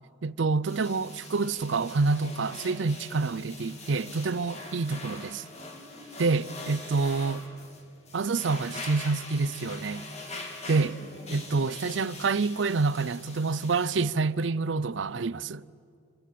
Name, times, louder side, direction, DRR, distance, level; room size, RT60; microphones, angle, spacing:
voice 1, 0.2-5.4 6.2-7.4 8.1-10.0 10.7-10.9 11.3-15.6, right 4 dB, 75° right, 0.6 m, -27 dB
sound 1, 0.7-14.0, left 2 dB, 35° left, 3.1 m, -43 dB
voice 2, 5.5-6.5 10.7-11.4, equal, 65° left, 6.9 m, -48 dB
26.0 x 25.5 x 8.5 m
head